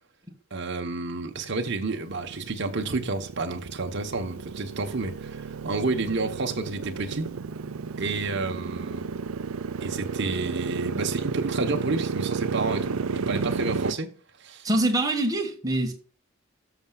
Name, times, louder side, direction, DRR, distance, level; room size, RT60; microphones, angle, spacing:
voice 1, 0.5-7.3 8.0-9.1 9.8-14.1 14.4-14.7, right 3 dB, 55° right, 1.0 m, -30 dB
Motorcycle, 1.3-13.9, right 5 dB, 80° right, 0.5 m, -32 dB
voice 2, 14.6-15.9, right 1 dB, 15° right, 1.6 m, -24 dB
13.5 x 6.9 x 2.4 m
head